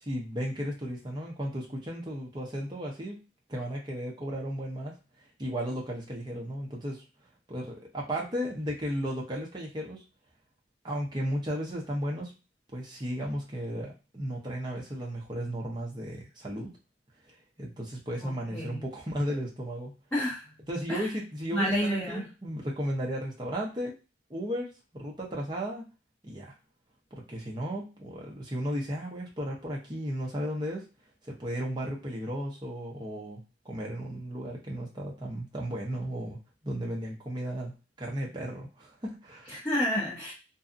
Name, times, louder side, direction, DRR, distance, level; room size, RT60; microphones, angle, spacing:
voice 1, 0.0-3.2 3.5-4.9 5.4-7.0 7.5-10.0 10.8-12.3 12.7-16.7 17.6-19.9 20.7-23.9 24.3-24.7 24.9-25.8 26.2-26.5 27.1-30.8 31.2-36.4 36.6-39.5, equal, 25° right, -2 dB, 0.7 m, -34 dB
voice 2, 18.2-18.8 20.1-20.5 20.9-21.1 21.5-22.2 39.5-40.3, equal, 10° left, -7 dB, 0.8 m, -30 dB
2.6 x 2.4 x 2.5 m, 0.31 s
head